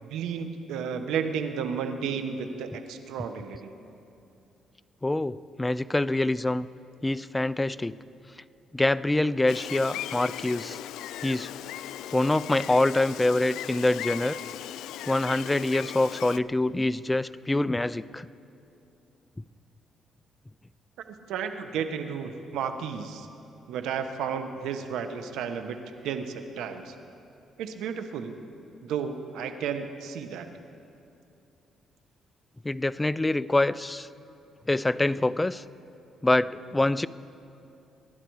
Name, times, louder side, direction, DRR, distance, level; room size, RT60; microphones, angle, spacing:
voice 1, 0.0-3.7 21.3-23.3 23.7-25.8 26.0-26.9 27.6-28.4 28.8-30.5, right 7 dB, 85° right, 8 dB, 1.0 m, -32 dB
voice 2, 5.0-6.7 7.0-7.9 8.7-10.8 11.2-11.5 12.1-14.4 15.1-18.3 32.6-34.1 34.7-35.6 36.2-37.1, left 2 dB, 15° left, 16 dB, 0.4 m, -25 dB
Gull seagull, 9.5-16.4, left 12 dB, 85° left, 0.3 m, -38 dB
24.5 x 11.5 x 4.7 m, 2.7 s
cardioid pair, 90°, 0 cm